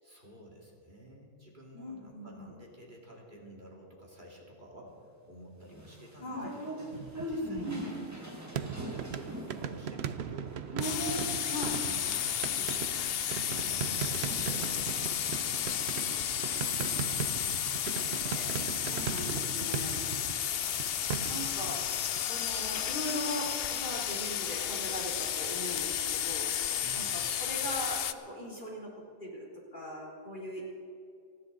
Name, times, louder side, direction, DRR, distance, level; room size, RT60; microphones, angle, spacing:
voice 1, 0.0-10.6 10.9-15.2 15.5-17.5 20.5-21.1 26.8-27.1, equal, 45° right, -2 dB, 2.7 m, -52 dB
voice 2, 1.7-2.5 6.2-6.5 7.6-8.0 11.5-11.8 14.3-14.7 18.3-20.0 21.3-21.8 22.2-26.5 26.9-28.9 29.2-30.7, equal, 45° left, -4 dB, 3.5 m, -40 dB
sound 1, 5.7-11.5, equal, 15° right, 2.0 m, -39 dB
sound 2, 6.9-8.1 8.5-22.2, right 8 dB, 70° right, 0.9 m, -39 dB
sound 3, 10.8-28.1, left 10 dB, 65° left, 0.8 m, -33 dB
30.0 x 10.5 x 3.9 m, 2.4 s
omnidirectional pair, 1.1 m